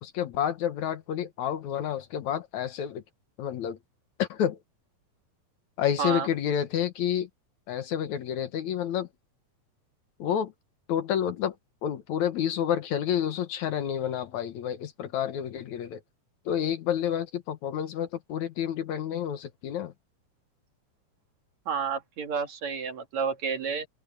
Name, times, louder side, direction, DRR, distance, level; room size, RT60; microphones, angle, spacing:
voice 1, 0.0-3.0 3.4-3.8 4.2-4.6 5.8-7.3 7.7-9.1 10.2-10.5 10.9-11.5 11.8-16.0 16.5-19.9, left 9 dB, 65° left, 2.4 m, -29 dB
voice 2, 21.7-23.9, right 6 dB, 60° right, 3.4 m, -30 dB
omnidirectional pair, 3.7 m